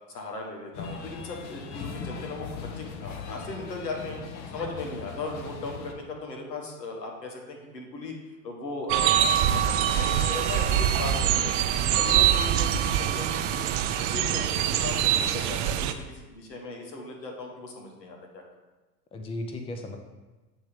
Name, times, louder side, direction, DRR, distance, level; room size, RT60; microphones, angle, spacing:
voice 1, 0.1-4.2 4.5-8.2 8.4-11.7 12.0-13.6 14.0-18.4, left 2 dB, 85° left, 1 dB, 1.5 m, -37 dB
sound 1, 0.7-5.9, left 5 dB, 50° left, 0.9 m, -39 dB
sound 2, 8.9-15.9, right 10 dB, 40° right, 0.4 m, -24 dB
voice 2, 11.9-12.6 19.1-20.0, left 2 dB, 10° left, 4 dB, 0.5 m, -37 dB
8.0 x 3.1 x 5.0 m, 1.2 s
hypercardioid pair, 90°, 48 cm